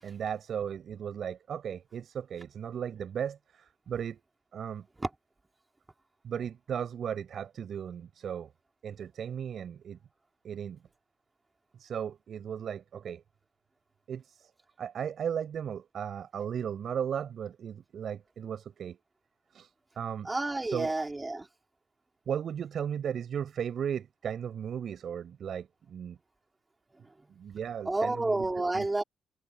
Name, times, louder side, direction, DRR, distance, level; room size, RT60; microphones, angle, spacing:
voice 1, 0.0-4.2 4.5-4.9 6.2-8.5 8.8-10.0 10.4-10.8 11.8-13.2 14.1-14.5 14.8-19.0 19.5-19.7 20.0-20.3 20.7-21.1 22.3-26.2 27.3-28.9, right 8 dB, 60° right, 7.8 m, -36 dB
voice 2, 20.2-21.4 27.9-29.0, right 2 dB, 15° right, 3.5 m, -30 dB
cardioid pair, 90°, 0 cm